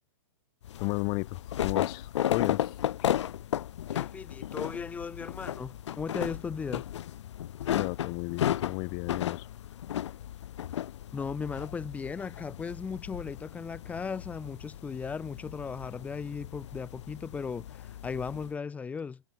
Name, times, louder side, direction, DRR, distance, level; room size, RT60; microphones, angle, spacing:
sound 1, 0.6-18.5, left 11 dB, 60° left, 3.1 m, -35 dB
voice 1, 0.8-3.1 7.7-9.5, left 34 dB, 30° left, 6.0 m, -34 dB
voice 2, 3.9-6.8 11.1-19.2, left 5 dB, 10° left, 1.6 m, -37 dB
hypercardioid pair, 165°, 16 cm